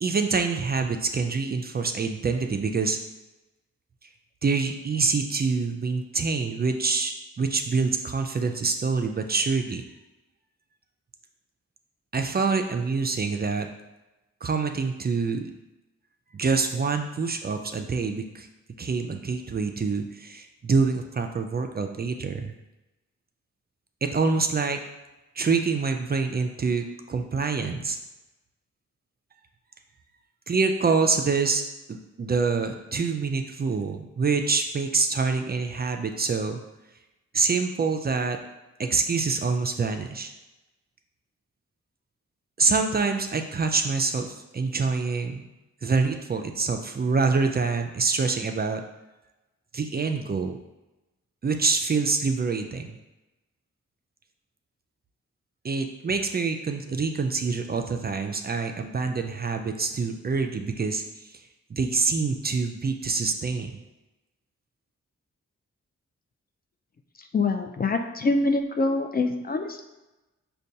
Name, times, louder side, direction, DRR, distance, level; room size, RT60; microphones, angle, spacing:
voice 1, 0.0-3.0 4.4-9.8 12.1-13.7 14.4-15.4 16.3-18.5 18.8-22.5 24.0-24.8 25.4-28.0 30.5-31.6 31.9-36.6 37.3-38.4 38.8-40.3 42.6-45.4 45.8-48.8 49.7-50.6 51.4-53.0 55.6-61.4 61.7-63.8, right 4 dB, 35° right, 5 dB, 0.4 m, -26 dB
voice 2, 67.3-69.8, left 3 dB, 30° left, 5 dB, 0.4 m, -25 dB
5.0 x 2.3 x 2.7 m, 1.0 s
cardioid pair, 45°, 29 cm